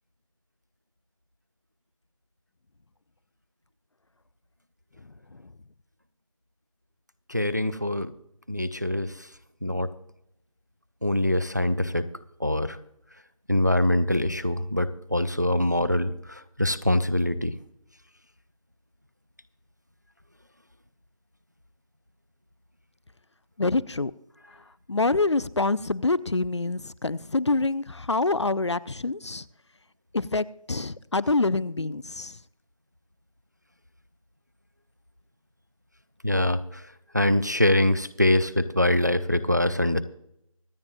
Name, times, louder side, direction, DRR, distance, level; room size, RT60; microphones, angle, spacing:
voice 1, 7.3-8.1 8.5-9.1 9.6-9.9 11.0-12.1 12.4-12.8 13.5-17.5 36.2-36.8 37.1-40.0, left 1 dB, 30° right, 14 dB, 0.4 m, -24 dB
voice 2, 23.6-24.1 24.9-29.5 30.1-32.4, left 3 dB, 50° left, 18 dB, 0.4 m, -26 dB
25.0 x 8.7 x 2.6 m, 0.76 s
figure-of-eight pair, 180°, 18 cm